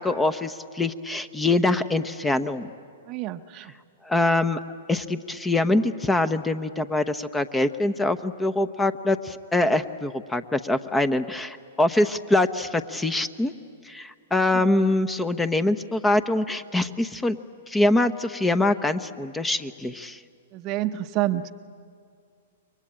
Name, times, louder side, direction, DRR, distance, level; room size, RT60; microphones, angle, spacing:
voice 1, 0.0-2.7 4.0-4.6 4.9-13.5 13.9-17.4 17.7-20.2, left 2 dB, 10° left, 12 dB, 0.9 m, -24 dB
voice 2, 3.1-3.7 14.5-14.6 20.5-21.5, right 14 dB, 40° right, 10 dB, 0.8 m, -28 dB
28.5 x 23.0 x 8.8 m, 2.2 s
hypercardioid pair, 115°, 0 cm